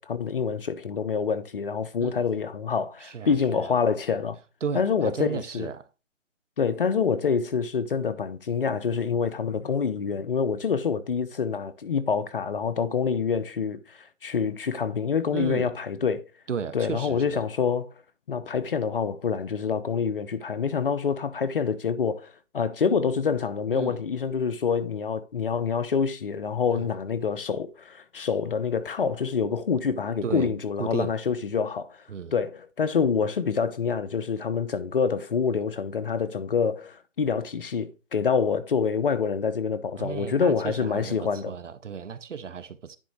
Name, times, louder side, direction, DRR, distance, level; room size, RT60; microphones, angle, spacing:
voice 1, 0.0-4.4 4.7-5.7 6.6-16.2 16.7-17.8 18.3-31.9 32.3-41.5, left 6 dB, 45° left, 0.8 m, -26 dB
voice 2, 3.0-3.8 4.6-5.9 15.3-15.7 16.5-17.4 23.7-24.0 26.7-26.9 30.2-30.5 30.8-31.1 32.1-32.3 40.0-43.0, right 6 dB, 70° right, 1.0 m, -34 dB
10.0 x 3.8 x 4.5 m
figure-of-eight pair, 155°, 38 cm